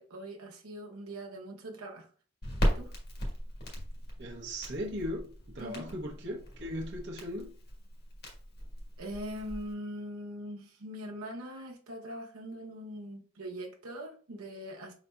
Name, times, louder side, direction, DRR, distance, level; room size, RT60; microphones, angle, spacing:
voice 1, 0.0-2.1 2.6-2.9 5.6-5.9 9.0-14.9, equal, 90° right, 0.9 m, -42 dB
Crackle, 2.4-9.7, equal, 50° left, 1.4 m, -37 dB
voice 2, 4.2-7.5, equal, 55° right, 0.8 m, -38 dB
5.4 x 4.1 x 2.3 m
head